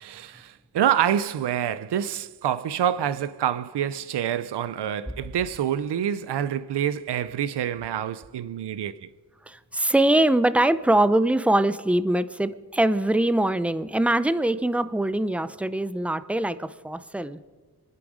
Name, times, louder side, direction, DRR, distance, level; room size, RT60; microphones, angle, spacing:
voice 1, 0.0-8.9, right 10 dB, 80° right, 0.6 m, -27 dB
voice 2, 9.5-17.4, right 1 dB, 5° right, 0.5 m, -23 dB
26.0 x 10.0 x 4.9 m
wide cardioid pair, 100°, 40 cm